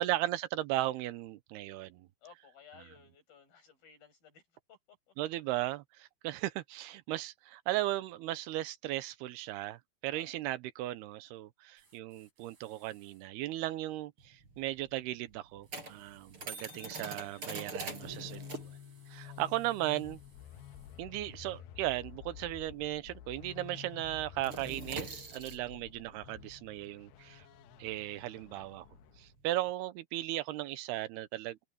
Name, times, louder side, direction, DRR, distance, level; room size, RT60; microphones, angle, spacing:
voice 1, 0.0-2.1 5.2-18.6 19.1-20.2 21.0-27.4 27.8-28.9 29.2-31.7, right 15 dB, 85° right, 2.8 m, -36 dB
voice 2, 2.2-4.4 4.7-5.1 10.1-10.3 19.2-19.4, left 7 dB, 65° left, 9.4 m, -58 dB
sound 1, 11.7-13.3 15.6-21.0, right 4 dB, 55° right, 9.7 m, -67 dB
sound 2, 14.2-23.2 23.4-23.7 24.0-29.7, right 3 dB, 30° right, 6.5 m, -45 dB
sound 3, 17.5-29.3, left 11 dB, 80° left, 2.7 m, -51 dB
open air
omnidirectional pair, 4.6 m